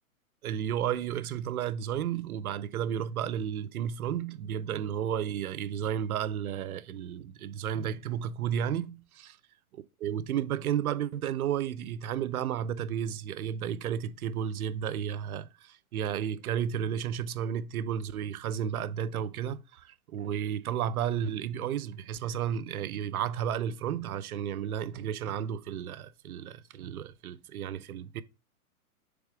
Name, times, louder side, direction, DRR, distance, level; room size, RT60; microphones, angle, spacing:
voice 1, 0.4-9.3 10.0-28.2, right 9 dB, 70° right, 0.7 m, -32 dB
7.1 x 3.6 x 4.8 m
hypercardioid pair, 155°, 45 cm